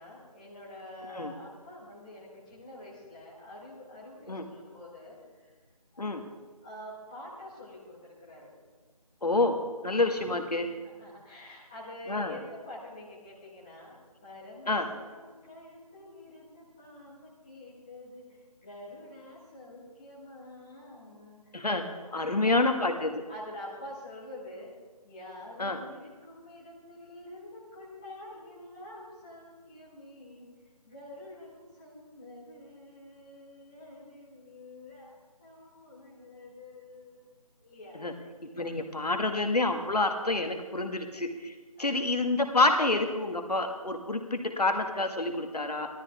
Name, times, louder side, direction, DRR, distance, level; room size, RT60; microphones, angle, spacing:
voice 1, 0.0-5.5 5.9-6.0 6.6-8.5 10.0-10.4 10.8-21.5 22.1-22.6 23.3-24.7 25.0-30.4 30.8-35.1 35.4-37.2 37.6-38.0 41.8-42.0, left 1 dB, 10° left, -8 dB, 1.5 m, -47 dB
voice 2, 9.2-9.6 9.8-10.7 12.1-12.3 14.7-14.9 21.5-21.8 22.1-23.3 25.6-25.8 38.0-38.1 38.4-45.9, left 2 dB, 80° left, 5 dB, 1.8 m, -28 dB
16.0 x 13.0 x 3.6 m, 1.3 s
figure-of-eight pair, 175°, 20 cm